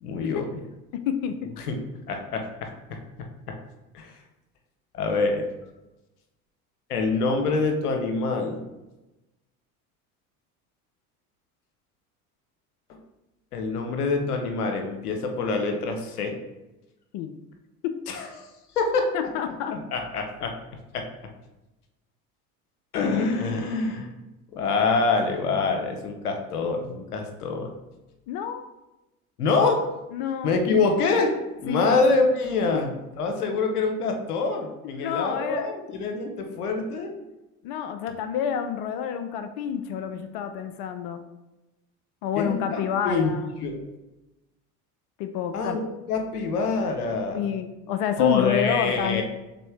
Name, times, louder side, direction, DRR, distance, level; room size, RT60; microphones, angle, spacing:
voice 1, 0.0-0.5 1.6-1.8 2.1-3.0 3.5-3.6 3.9-4.1 4.9-5.4 6.9-8.7 12.9-13.0 13.5-16.4 18.1-18.5 18.8-19.1 19.7-20.5 20.9-21.0 22.9-24.1 24.5-27.7 29.4-29.8 30.4-31.3 31.6-32.9 33.2-37.1 42.3-43.3 43.6-43.8 45.5-45.8 46.1-47.4 48.2-49.2, left 4 dB, 90° left, 4 dB, 0.7 m, -25 dB
voice 2, 19.1-19.8 28.3-28.6 30.1-30.5 31.7-31.9 32.7-32.8 35.0-35.7 37.6-41.2 42.2-43.4 45.2-45.8 47.3-49.2, left 9 dB, 55° left, 8 dB, 0.5 m, -28 dB
4.3 x 3.5 x 3.3 m, 1.0 s
hypercardioid pair, 70°, 44 cm